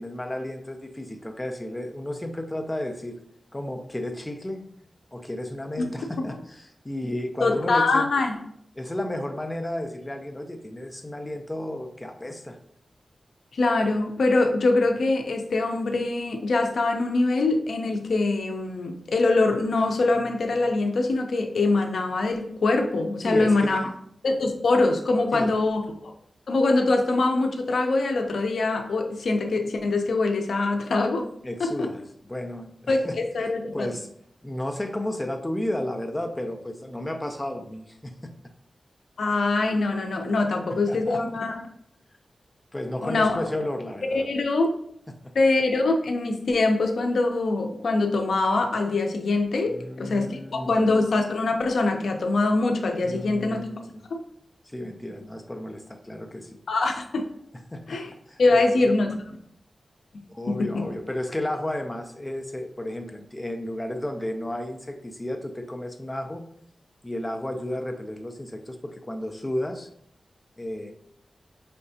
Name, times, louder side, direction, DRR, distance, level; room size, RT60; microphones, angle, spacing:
voice 1, 0.0-3.2 3.5-4.6 5.1-8.1 8.8-12.6 23.2-23.9 25.3-25.6 31.4-32.0 32.3-33.2 33.7-34.1 34.4-38.3 40.7-41.4 42.7-44.3 45.2-45.3 49.7-50.9 53.0-54.0 54.6-56.6 57.7-58.0 58.3-58.4 58.7-58.9 60.3-66.4 67.0-69.9 70.6-70.9, left 1 dB, 15° left, 5 dB, 0.5 m, -33 dB
voice 2, 7.4-8.4 13.5-23.8 24.2-26.1 26.5-31.3 31.6-31.9 32.9-33.9 39.2-41.6 43.0-43.4 44.1-44.7 45.3-53.6 54.1-54.2 56.7-57.3 57.9-58.1 58.4-59.3 60.5-60.9, left 3 dB, 85° left, 4 dB, 0.5 m, -23 dB
4.8 x 3.2 x 2.8 m, 0.67 s
wide cardioid pair, 80°, 0 cm